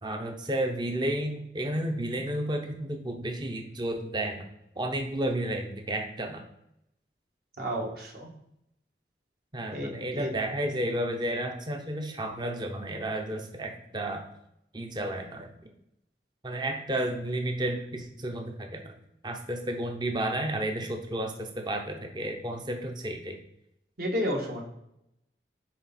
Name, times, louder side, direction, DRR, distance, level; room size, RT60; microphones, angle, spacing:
voice 1, 0.0-4.5 4.8-6.4 9.5-14.3 14.7-15.5 16.4-18.9 19.2-23.4, right 1 dB, 25° right, 4 dB, 0.6 m, -32 dB
voice 2, 7.6-8.3 9.7-10.3 24.0-24.6, equal, 60° right, 0 dB, 1.4 m, -31 dB
8.5 x 3.4 x 4.2 m, 0.80 s
head